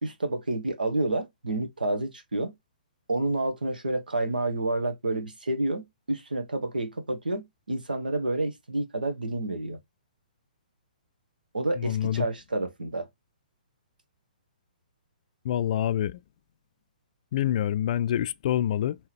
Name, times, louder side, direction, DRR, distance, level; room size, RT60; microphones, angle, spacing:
voice 1, 0.0-2.5 3.1-5.8 6.1-9.8 11.5-13.1, right 2 dB, 80° right, 1.0 m, -29 dB
voice 2, 11.8-12.3 15.4-16.2 17.3-19.0, left 11 dB, 50° left, 0.3 m, -26 dB
5.6 x 3.0 x 3.2 m
figure-of-eight pair, 125°, 5 cm